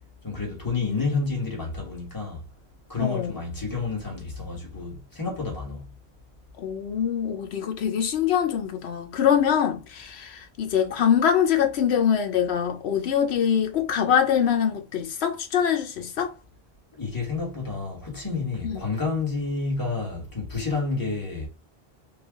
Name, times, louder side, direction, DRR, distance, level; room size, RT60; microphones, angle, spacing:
voice 1, 0.2-2.4 2.9-5.9 16.9-21.5, left 4 dB, 20° left, 1.4 m, -29 dB
voice 2, 3.0-3.4 6.6-16.3 18.6-18.8, left 8 dB, 85° left, 0.9 m, -24 dB
3.3 x 2.3 x 3.5 m
omnidirectional pair, 1.1 m